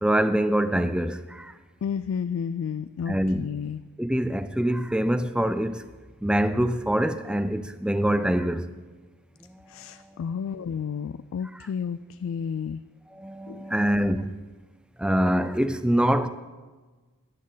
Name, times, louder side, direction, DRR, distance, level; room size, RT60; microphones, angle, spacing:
voice 1, 0.0-1.5 3.1-3.5 4.0-5.9 6.2-8.7 9.9-10.0 13.1-14.4 15.0-16.3, right 1 dB, 5° right, 0.4 m, -24 dB
voice 2, 1.8-3.8 9.7-12.8 13.5-13.7, left 7 dB, 60° left, 0.3 m, -31 dB
13.5 x 11.5 x 4.0 m
head